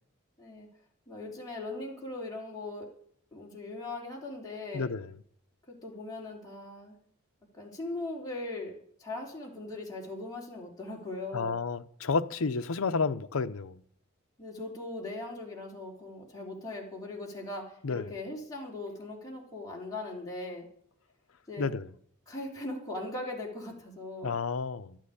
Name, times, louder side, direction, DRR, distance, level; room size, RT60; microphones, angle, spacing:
voice 1, 1.1-2.9 3.3-4.9 5.7-7.0 7.5-11.6 14.4-20.7 21.5-21.7 22.3-24.4, left 2 dB, 15° left, 3.5 m, -39 dB
voice 2, 4.7-5.1 11.3-13.8 17.8-18.1 21.6-21.9 24.2-25.0, left 4 dB, 80° left, 0.7 m, -31 dB
12.5 x 9.1 x 8.5 m
head